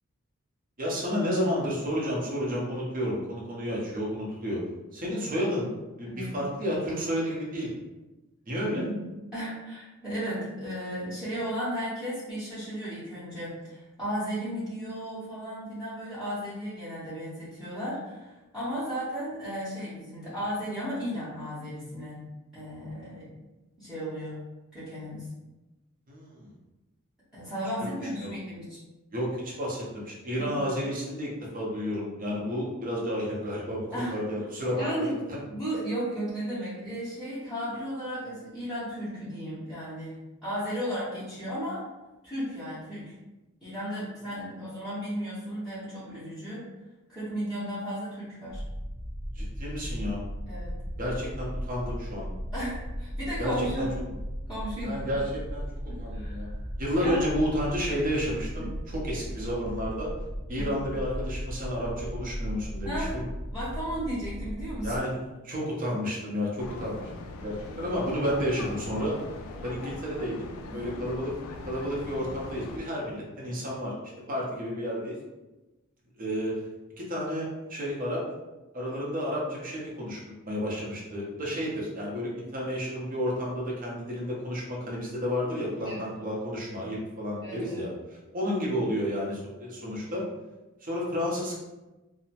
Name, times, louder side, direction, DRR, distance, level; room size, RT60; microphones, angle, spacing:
voice 1, 0.8-4.6 4.9-5.7 6.0-7.7 8.5-8.9 26.1-26.5 27.9-28.3 29.1-35.4 49.3-50.2 51.0-52.3 53.4-53.9 54.8-55.6 56.0-56.5 56.8-60.1 60.5-63.2 64.8-65.1 65.4-69.2 69.6-71.3 71.7-73.9 74.3-75.1 76.2-76.6 77.0-78.2 78.7-80.2 80.4-90.2 90.8-91.6, equal, 40° right, -4 dB, 0.7 m, -31 dB
voice 2, 9.3-22.2 22.5-23.3 23.8-24.4 24.7-25.3 27.3-28.8 30.4-30.6 33.9-34.1 34.7-35.2 35.5-40.1 40.4-41.8 42.2-43.1 43.6-46.6 47.1-48.6 50.5-50.7 52.5-53.9 54.5-55.0 55.9-56.6 57.0-57.2 60.6-60.7 62.8-63.1 63.5-65.0 70.7-71.0 85.8-86.0 87.4-87.8, equal, 5° right, -14 dB, 0.8 m, -34 dB
sound 1, 48.5-65.0, equal, 35° left, 0.7 m, -36 dB
sound 2, 66.6-72.8, left 2 dB, 80° left, 0.3 m, -41 dB
2.7 x 2.0 x 2.8 m, 1.1 s
head